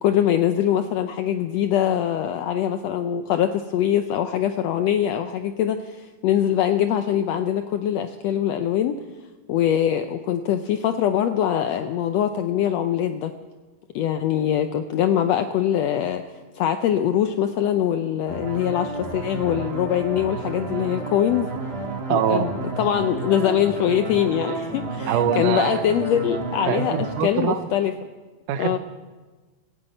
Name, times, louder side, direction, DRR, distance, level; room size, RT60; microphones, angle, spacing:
voice 1, 0.0-9.0 9.5-13.3 13.9-16.2 16.5-21.5 22.1-22.5 22.8-27.9 28.6-28.8, left 10 dB, 80° left, 8 dB, 1.5 m, -23 dB
sound 1, 18.3-27.2, right 3 dB, 30° right, 1.1 m, -31 dB
voice 2, 22.1-22.5 25.1-25.8 26.7-27.7 28.5-28.8, right 10 dB, 85° right, 10 dB, 2.4 m, -24 dB
15.5 x 9.5 x 8.9 m, 1.3 s
omnidirectional pair, 3.6 m